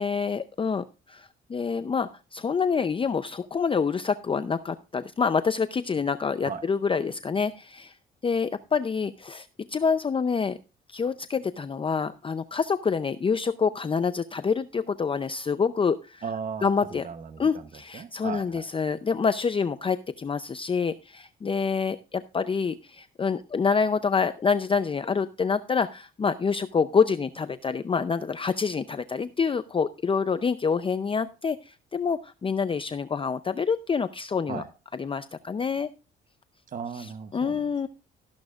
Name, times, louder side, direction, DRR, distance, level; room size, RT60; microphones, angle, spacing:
voice 1, 0.0-7.9 8.2-10.6 10.9-16.2 16.6-17.1 17.4-34.6 35.0-35.9 37.3-37.9, left 5 dB, 25° left, 12 dB, 0.5 m, -27 dB
voice 2, 16.2-18.7 34.5-34.7 36.7-37.9, right 6 dB, 45° right, 9 dB, 0.9 m, -37 dB
13.5 x 11.5 x 2.4 m, 0.31 s
cardioid pair, 90°, 20 cm